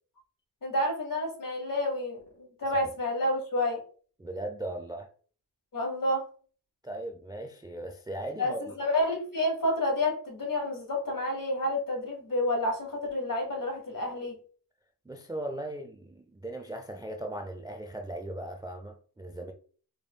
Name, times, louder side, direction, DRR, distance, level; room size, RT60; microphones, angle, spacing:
voice 1, 0.6-3.8 5.7-6.2 8.4-14.4, left 1 dB, 50° left, 1.8 m, -29 dB
voice 2, 4.2-5.1 6.8-8.7 15.1-19.5, right 1 dB, 10° right, 0.4 m, -38 dB
4.0 x 3.5 x 2.2 m
cardioid pair, 50°, 41 cm